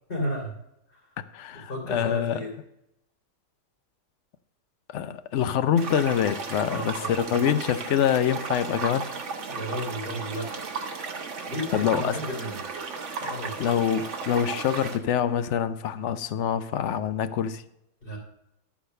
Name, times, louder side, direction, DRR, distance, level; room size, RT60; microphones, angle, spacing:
voice 1, 0.1-0.6 0.9-1.0 1.5-2.5 6.6-7.5 9.5-10.5 11.5-12.8 13.2-13.6 18.0-18.2, equal, 30° left, 3.1 m, -33 dB
voice 2, 1.3-2.4 4.9-9.1 11.7-12.2 13.6-17.6, left 9 dB, 70° left, 0.6 m, -25 dB
sound 1, 5.8-15.0, right 4 dB, 45° right, 1.3 m, -35 dB
11.5 x 4.9 x 6.5 m
omnidirectional pair, 1.9 m